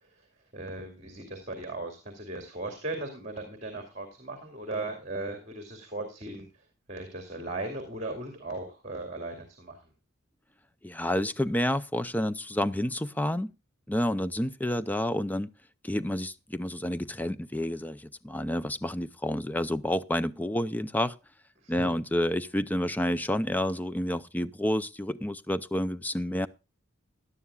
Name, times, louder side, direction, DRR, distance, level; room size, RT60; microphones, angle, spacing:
voice 1, 0.5-6.5 6.9-9.8 21.6-22.0, right 2 dB, 35° right, 2.3 m, -37 dB
voice 2, 10.8-13.5 13.9-15.5 15.8-21.2 21.7-26.5, left 1 dB, 10° left, 0.4 m, -29 dB
16.5 x 11.0 x 2.3 m
head